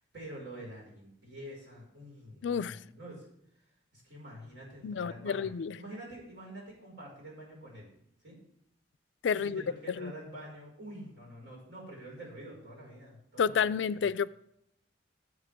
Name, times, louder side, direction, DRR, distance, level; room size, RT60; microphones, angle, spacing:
voice 1, 0.1-3.2 3.9-7.9 8.2-8.4 9.3-14.1, right 1 dB, 65° right, -4 dB, 5.0 m, -47 dB
voice 2, 2.4-2.8 4.8-5.8 9.2-9.6 10.0-10.1 13.4-14.3, left 6 dB, 70° left, 18 dB, 0.4 m, -30 dB
14.0 x 8.1 x 3.5 m, 0.76 s
head